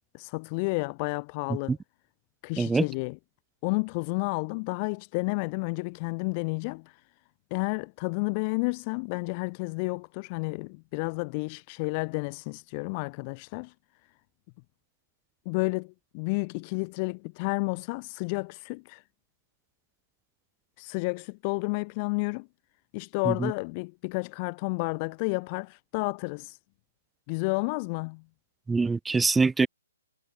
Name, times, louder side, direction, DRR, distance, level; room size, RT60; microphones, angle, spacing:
voice 1, 0.1-1.7 2.4-3.2 3.6-7.0 7.5-13.7 15.4-19.0 20.8-22.5 22.9-26.6 27.3-28.2, left 31 dB, 25° left, 3.0 m, -31 dB
voice 2, 28.7-29.7, right 4 dB, 5° right, 2.5 m, -24 dB
hypercardioid pair, 160°, 0 cm